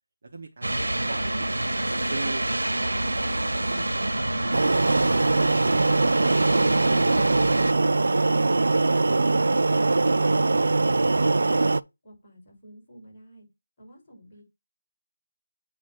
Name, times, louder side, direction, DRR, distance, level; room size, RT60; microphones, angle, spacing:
voice 1, 0.2-0.7 1.1-1.5 1.8-3.4 3.7-5.2, right 3 dB, 40° right, 1.0 m, -41 dB
sound 1, 0.6-7.7, right 1 dB, 80° right, 1.2 m, -27 dB
sound 2, 4.5-11.8, right 3 dB, 60° right, 0.4 m, -22 dB
voice 2, 12.0-13.5 13.8-14.4, equal, 5° left, 5.4 m, -49 dB
8.3 x 3.1 x 5.6 m
figure-of-eight pair, 170°, 0 cm